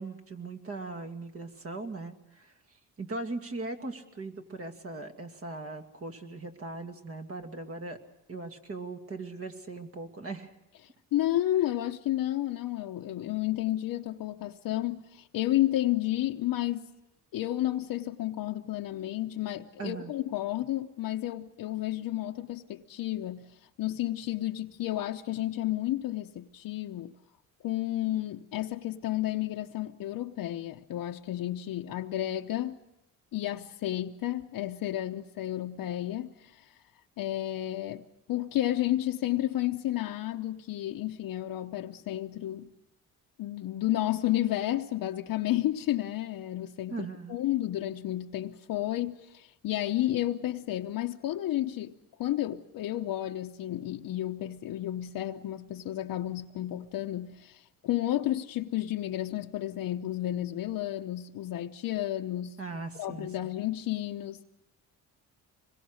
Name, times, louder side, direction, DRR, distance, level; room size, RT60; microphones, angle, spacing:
voice 1, 0.0-8.0 8.3-10.5 19.8-20.1 46.9-47.4 62.6-63.3, right 3 dB, 40° right, 2.5 m, -39 dB
voice 2, 11.1-16.9 17.3-23.5 23.8-27.1 27.6-32.8 33.3-36.7 37.2-42.7 43.4-51.9 52.2-62.6 63.0-64.4, left 14 dB, 75° left, 0.9 m, -31 dB
25.5 x 21.5 x 6.4 m
cardioid pair, 90°, 35 cm